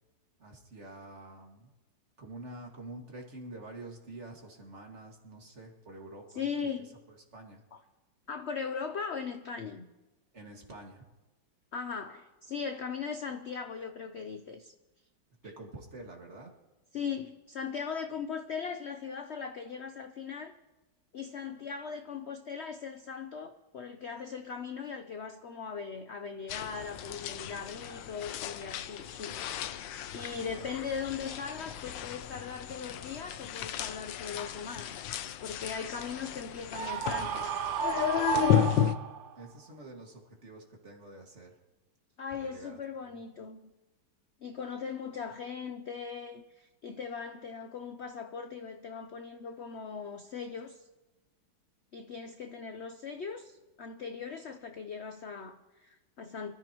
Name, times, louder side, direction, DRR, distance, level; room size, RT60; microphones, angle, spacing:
voice 1, 0.4-1.7 2.2-6.7 7.1-7.6 10.3-11.0 15.4-16.6 39.4-41.6 42.3-43.2, right 2 dB, 40° right, 1 dB, 2.2 m, -47 dB
voice 2, 6.4-6.9 8.3-9.9 11.7-14.7 16.9-20.5 21.1-29.4 29.7-35.1 35.4-37.5 42.2-43.7 44.4-50.9 51.9-56.5, left 6 dB, 60° left, 7 dB, 0.7 m, -39 dB
sound 1, 26.5-39.0, left 10 dB, 85° left, 1.4 m, -34 dB
Screaming, 36.7-39.4, right 8 dB, 75° right, 0.6 m, -32 dB
25.0 x 14.0 x 3.0 m, 1.1 s
omnidirectional pair, 1.9 m